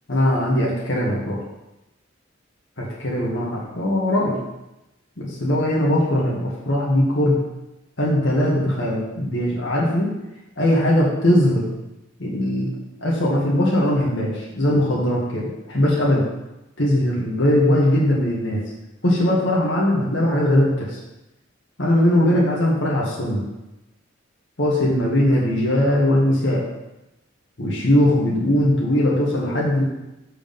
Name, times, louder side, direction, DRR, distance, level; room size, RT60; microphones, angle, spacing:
voice 1, 0.1-1.4 2.8-4.4 5.2-7.4 8.0-10.1 10.6-11.6 12.2-12.7 13.0-16.2 16.8-18.6 19.0-21.0 21.8-23.4 24.6-26.6 27.6-29.8, left 1 dB, 65° left, -5 dB, 1.9 m, -20 dB
7.4 x 5.0 x 5.5 m, 0.95 s
head